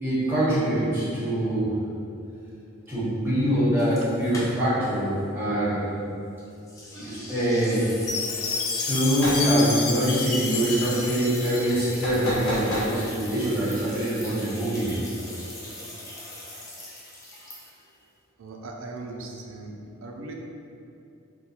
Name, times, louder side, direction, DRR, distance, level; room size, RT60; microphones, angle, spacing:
voice 1, 0.0-1.7 2.9-5.8 6.9-7.9 8.4-15.0, right 1 dB, 10° right, -11 dB, 1.0 m, -24 dB
sound 1, 3.8-4.9 5.2-5.3 6.7-18.0, left 1 dB, 15° left, 0.4 m, -40 dB
Chime, 8.1-12.2, left 4 dB, 90° left, 0.4 m, -30 dB
sound 2, 9.1-9.4 12.0-12.9, equal, 70° left, 0.9 m, -29 dB
voice 2, 18.4-19.8 20.0-20.3, right 3 dB, 65° right, 1 dB, 0.4 m, -38 dB
3.8 x 2.2 x 2.8 m, 2.6 s
head